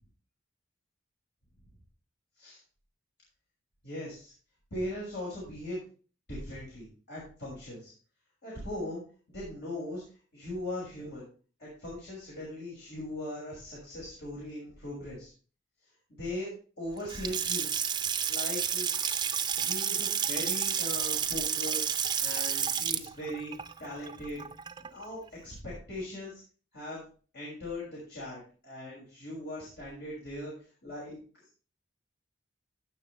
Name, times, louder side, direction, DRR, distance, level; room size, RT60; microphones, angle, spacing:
voice 1, 3.8-4.3 4.7-5.8 6.3-7.9 8.4-9.0 9.3-10.0 10.3-11.3 11.6-15.3 16.1-16.5 16.8-17.7 18.3-18.9 19.6-21.9 22.2-23.5 23.8-24.4 24.8-26.3 26.7-27.0 27.3-30.5 30.8-31.2, left 1 dB, 60° left, -6 dB, 6.3 m, -39 dB
Water tap faucet / Sink (filling or washing) / Splash splatter, 17.0-25.1, right 8 dB, 20° right, 0.6 m, -31 dB
17.0 x 6.7 x 3.3 m, 0.38 s
head